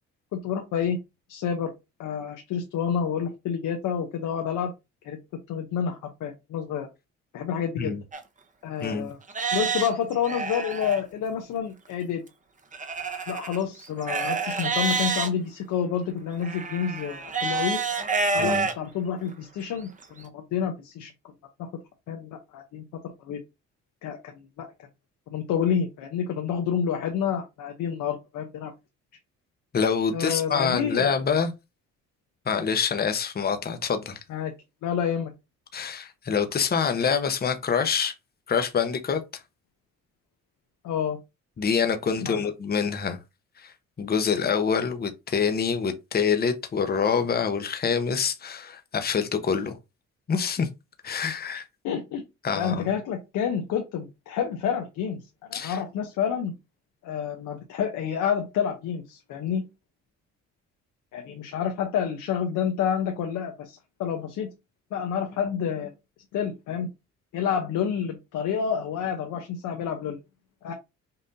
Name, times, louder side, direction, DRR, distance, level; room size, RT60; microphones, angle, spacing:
voice 1, 0.3-1.0 1.3-1.7 2.0-4.7 5.0-5.2 5.5-6.9 7.3-7.9 8.6-9.2 9.5-12.2 13.3-17.8 18.3-21.1 21.6-21.7 22.1-22.8 23.2-23.4 24.0-24.3 24.6-24.7 25.3-28.7 30.1-31.1 34.3-34.5 34.8-35.3 40.8-41.2 42.2-42.5 51.8-52.2 52.5-55.2 55.5-56.5 57.0-59.6 61.1-64.5 64.9-65.9 66.3-66.9 67.3-70.2 70.6-70.7, left 8 dB, 85° left, 0.8 m, -29 dB
Livestock farm animals working animals, 8.1-8.2 8.8-8.9 9.3-11.0 12.7-15.3 16.4-18.7 19.3-19.4 20.0-20.1, right 4 dB, 25° right, 0.8 m, -28 dB
voice 2, 8.8-9.1 18.4-18.7 29.7-31.5 32.5-34.2 35.7-38.1 38.5-39.2 41.6-43.2 43.6-49.8 50.3-50.7 51.0-51.6 52.4-52.8 55.5-55.8, left 6 dB, 30° left, 0.8 m, -26 dB
5.5 x 2.6 x 2.7 m
cardioid pair, 90°, 30 cm